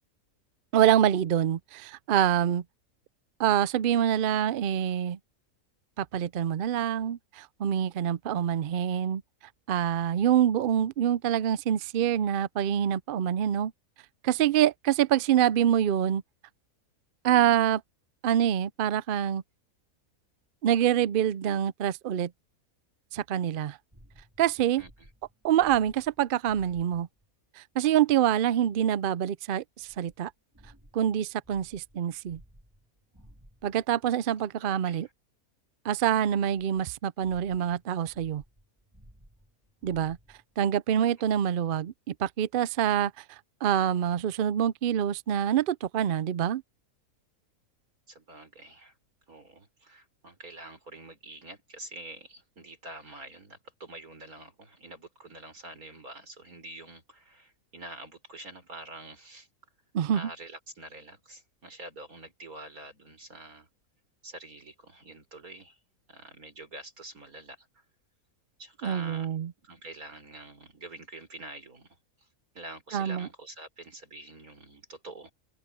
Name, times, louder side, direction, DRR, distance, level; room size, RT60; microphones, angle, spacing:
voice 1, 0.7-2.6 3.4-5.2 6.0-9.2 9.7-13.7 14.2-16.2 17.2-17.8 18.2-19.4 20.6-22.3 23.1-23.8 24.4-24.8 25.4-27.1 27.6-30.3 30.9-32.4 33.6-35.1 35.8-38.4 39.8-40.2 40.6-43.2 43.6-46.6 59.9-60.3 68.8-69.5 72.9-73.3, right 10 dB, 65° right, 0.5 m, -26 dB
sound 1, 23.9-27.3 29.8-34.0 36.5-40.6, equal, 10° right, 3.1 m, -57 dB
voice 2, 24.8-25.1 34.2-35.1 41.2-41.4 48.1-49.0 49.3-59.5 60.1-63.7 64.2-65.8 66.1-67.8 68.6-69.3 69.6-72.3 72.5-75.3, right 2 dB, 80° right, 5.1 m, -46 dB
open air
omnidirectional pair, 1.5 m